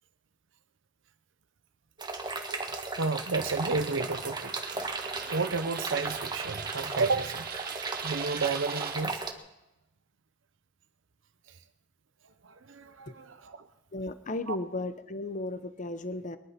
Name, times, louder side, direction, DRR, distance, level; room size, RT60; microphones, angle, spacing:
sound 1, 2.0-9.3, right 3 dB, 20° right, 1.6 m, -36 dB
voice 1, 2.5-4.5 5.0-7.5 7.8-9.2 12.4-13.7 14.5-14.6, right 4 dB, 80° right, 10 dB, 0.8 m, -32 dB
Coin (dropping), 3.5-9.0, right 8 dB, 50° right, 0.9 m, -41 dB
voice 2, 13.9-16.4, left 2 dB, 40° left, 12 dB, 0.8 m, -35 dB
21.5 x 11.5 x 5.8 m, 0.94 s
head